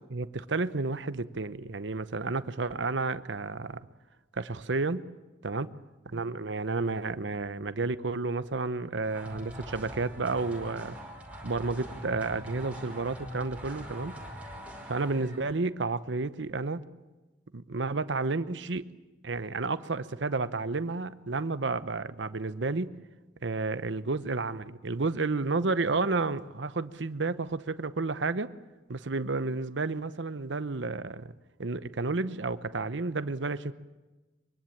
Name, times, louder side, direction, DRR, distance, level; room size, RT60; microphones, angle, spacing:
voice 1, 0.1-3.9 4.3-5.1 5.4-5.7 6.1-10.9 11.4-14.2 14.9-16.8 17.5-18.9 19.2-22.9 23.4-28.5 28.9-31.3 31.6-33.7, right 3 dB, 80° right, 13 dB, 0.9 m, -31 dB
sound 1, 9.0-15.5, equal, 10° right, 5.1 m, -43 dB
23.5 x 23.5 x 8.7 m, 1.2 s
head